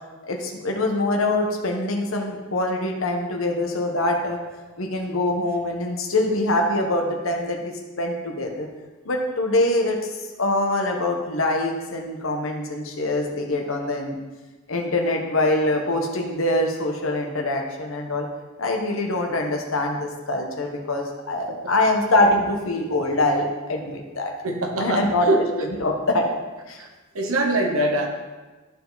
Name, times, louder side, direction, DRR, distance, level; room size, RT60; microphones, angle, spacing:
voice 1, 0.3-4.4 4.8-7.6 8.0-8.7 9.0-14.2 14.7-18.3 18.6-24.3 24.8-26.3 26.7-26.8, left 2 dB, 70° left, 1 dB, 1.2 m, -24 dB
voice 2, 24.4-25.4 26.8-26.9 27.1-28.1, right 1 dB, 85° right, 2 dB, 1.1 m, -23 dB
12.5 x 4.7 x 4.0 m, 1.2 s
head